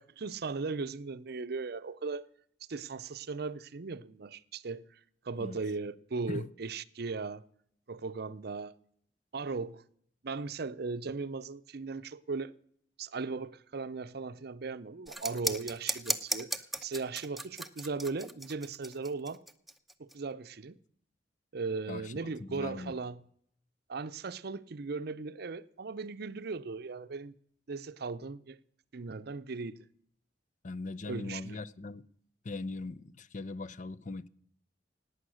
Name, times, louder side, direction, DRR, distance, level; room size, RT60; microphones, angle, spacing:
voice 1, 0.0-2.3 2.7-5.0 5.2-7.5 7.9-8.8 9.3-9.8 10.2-12.5 13.0-19.4 20.0-20.8 21.5-23.2 23.9-27.3 27.7-28.6 28.9-29.9 31.1-31.6, right 4 dB, 60° right, 0.6 m, -38 dB
sound 1, 15.1-20.1, right 1 dB, ahead, 0.8 m, -36 dB
voice 2, 22.4-22.9 30.6-32.0 32.4-34.3, left 3 dB, 45° left, 0.6 m, -40 dB
18.0 x 9.4 x 6.3 m
head